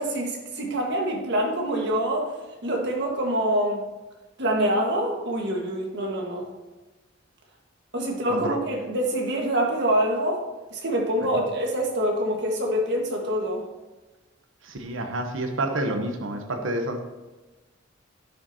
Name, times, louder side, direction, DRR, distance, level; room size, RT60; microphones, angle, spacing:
voice 1, 0.0-2.3 2.6-3.8 4.4-6.5 7.9-10.4 10.7-13.6, right 1 dB, 60° right, 0 dB, 1.5 m, -25 dB
voice 2, 14.6-17.0, right 1 dB, 75° right, 4 dB, 0.8 m, -29 dB
10.5 x 6.2 x 2.8 m, 1.1 s
head